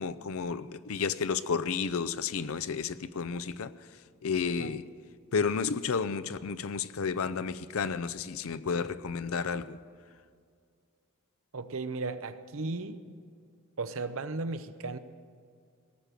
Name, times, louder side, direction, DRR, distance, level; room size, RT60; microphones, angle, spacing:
voice 1, 0.0-3.9 4.2-4.9 5.3-9.8, left 5 dB, 70° left, 0.5 m, -32 dB
voice 2, 11.5-13.2 13.8-15.0, right 3 dB, 65° right, 0.7 m, -35 dB
18.0 x 6.8 x 9.0 m
head